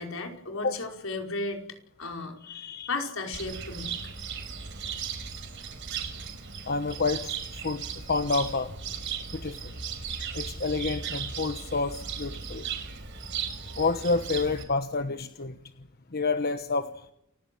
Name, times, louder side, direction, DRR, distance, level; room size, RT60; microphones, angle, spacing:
voice 1, 0.0-1.6 2.0-2.4 2.9-3.9, left 3 dB, 75° left, 3 dB, 5.3 m, -34 dB
voice 2, 2.4-2.9 6.6-7.3 7.6-7.8 8.1-8.7 9.3-9.7 10.3-12.7 13.8-15.6 16.1-17.1, left 3 dB, 50° left, 9 dB, 1.2 m, -29 dB
Cricket, 3.3-14.6, right 6 dB, 60° right, 5.0 m, -37 dB
29.5 x 16.0 x 7.9 m, 0.74 s
head